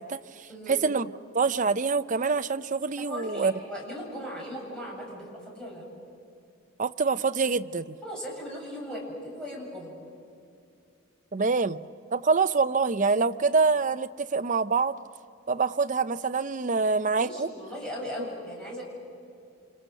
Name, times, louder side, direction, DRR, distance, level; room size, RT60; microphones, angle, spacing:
voice 1, 0.0-3.5 6.8-8.0 11.3-11.8 12.1-14.9 15.5-17.5, right 4 dB, 35° right, 11 dB, 0.6 m, -26 dB
voice 2, 3.0-5.9 8.0-9.9 17.2-18.8, equal, 5° left, -4 dB, 7.9 m, -38 dB
30.0 x 27.0 x 6.6 m, 2.4 s
head